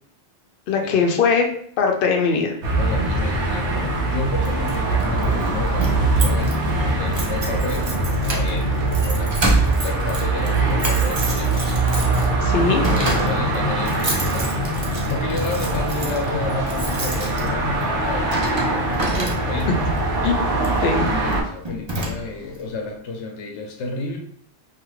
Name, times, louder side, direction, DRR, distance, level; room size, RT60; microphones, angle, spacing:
voice 1, 0.7-1.5 1.8-2.6 12.4-12.8 20.2-20.4 20.8-21.0, left 5 dB, 60° left, 3 dB, 0.6 m, -20 dB
sound 1, 2.6-21.4, right 2 dB, 85° right, 1.0 m, -22 dB
voice 2, 2.8-7.9 8.2-9.4 9.8-11.9 12.8-14.5 15.1-19.9 21.0-24.2, left 3 dB, 85° left, 2 dB, 0.9 m, -31 dB
Keys jangling, 4.4-19.8 20.6-20.8 21.3-21.4 21.6-22.6, right 2 dB, 40° right, 0.4 m, -29 dB
2.7 x 2.4 x 3.0 m, 0.63 s
omnidirectional pair, 1.2 m